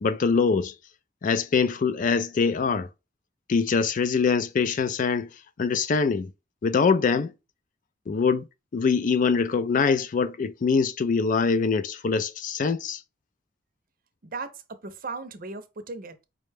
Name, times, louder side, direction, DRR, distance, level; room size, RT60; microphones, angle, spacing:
voice 1, 0.0-0.7 1.2-2.9 3.5-5.3 5.6-6.3 6.6-7.3 8.1-8.5 8.7-13.0, left 5 dB, 40° left, 0.3 m, -23 dB
voice 2, 14.2-16.2, right 3 dB, 45° right, 0.6 m, -37 dB
5.0 x 2.2 x 3.3 m
head